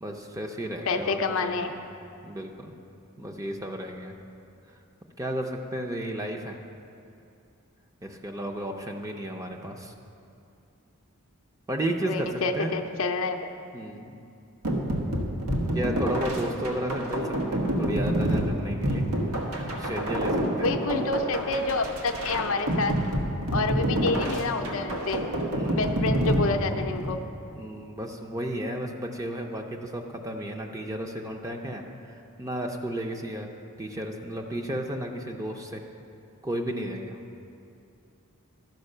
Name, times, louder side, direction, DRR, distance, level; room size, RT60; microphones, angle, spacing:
voice 1, 0.0-1.7 2.2-2.7 3.2-4.1 5.2-6.6 8.0-9.9 11.7-12.7 13.7-14.2 15.7-19.1 19.7-20.8 23.7-24.1 25.5-25.9 27.6-33.5 33.8-35.8 36.4-37.2, right 1 dB, 15° right, 2 dB, 0.6 m, -33 dB
voice 2, 0.9-1.7 12.0-13.4 20.6-23.0 23.5-25.2 25.7-27.2, left 3 dB, 60° left, 5 dB, 0.6 m, -28 dB
sound 1, 14.6-27.2, right 1 dB, 90° right, 1.2 m, -28 dB
12.0 x 5.3 x 6.6 m, 2.6 s
head